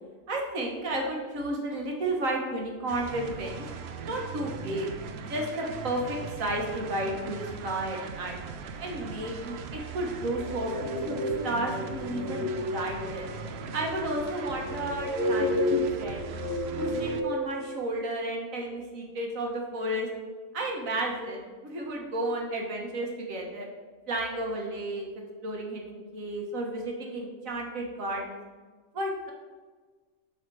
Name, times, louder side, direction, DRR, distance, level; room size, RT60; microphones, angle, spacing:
voice 1, 0.3-3.6 4.0-4.9 5.3-8.4 8.8-13.3 13.7-16.3 16.8-20.1 20.5-23.7 24.1-25.1 25.4-28.4 28.9-29.3, right 1 dB, 80° right, 0 dB, 1.7 m, -32 dB
sound 1, 2.9-17.2, right 5 dB, 60° right, 0.8 m, -40 dB
sound 2, 10.4-17.8, left 1 dB, 40° left, 1.3 m, -31 dB
6.6 x 5.7 x 4.7 m, 1.4 s
omnidirectional pair, 1.4 m